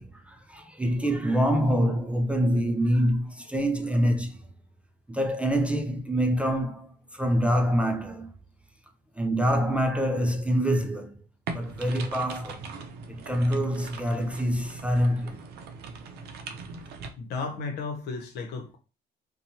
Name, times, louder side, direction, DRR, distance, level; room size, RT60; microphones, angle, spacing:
voice 1, 0.0-4.4 5.1-8.3 9.2-11.1 11.5-12.7 13.1-15.4, equal, 5° right, 0.3 m, -26 dB
sound 1, 11.5-17.1, right 4 dB, 75° right, 0.5 m, -40 dB
voice 2, 17.2-18.8, left 4 dB, 75° left, 0.8 m, -34 dB
2.7 x 2.2 x 2.8 m
cardioid pair, 110°, 17 cm